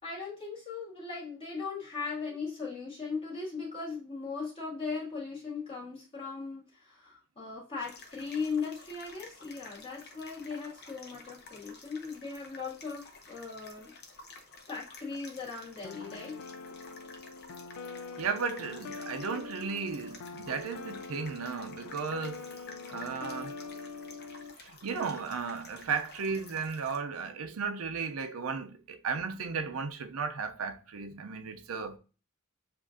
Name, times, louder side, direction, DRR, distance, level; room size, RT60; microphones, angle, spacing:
voice 1, 0.0-13.9 14.7-16.4, left 4 dB, 25° left, 2.0 m, -38 dB
sound 1, 7.8-27.0, left 3 dB, 50° left, 0.9 m, -51 dB
sound 2, 15.8-24.5, left 4 dB, 75° left, 0.4 m, -44 dB
voice 2, 18.2-22.5 22.9-23.5 24.6-32.0, right 5 dB, 80° right, 0.5 m, -35 dB
7.3 x 2.5 x 2.6 m
head